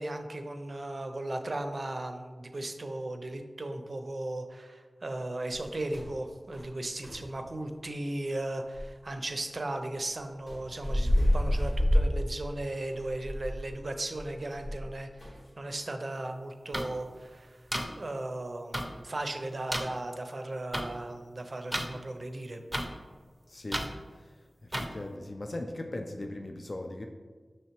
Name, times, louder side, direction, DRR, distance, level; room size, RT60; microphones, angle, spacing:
voice 1, 0.0-15.3 15.6-17.6 18.0-22.6, right 2 dB, 60° right, 6 dB, 0.4 m, -36 dB
sound 1, 5.5-6.1 6.5-6.7 7.0-7.3 8.8-8.9 10.5-14.9 15.2-15.5, equal, 90° left, 1.4 m, -29 dB
sound 2, 16.7-16.8 17.7-17.8 18.7-18.8 19.7-19.8 20.7-20.8 21.7-21.9 22.7-22.9 23.7-23.9 24.7-24.9, equal, 10° right, 0.5 m, -30 dB
voice 2, 23.5-24.3 24.6-27.1, left 1 dB, 55° left, 4 dB, 0.3 m, -39 dB
5.6 x 3.1 x 2.9 m, 1.5 s
wide cardioid pair, 50°, 0 cm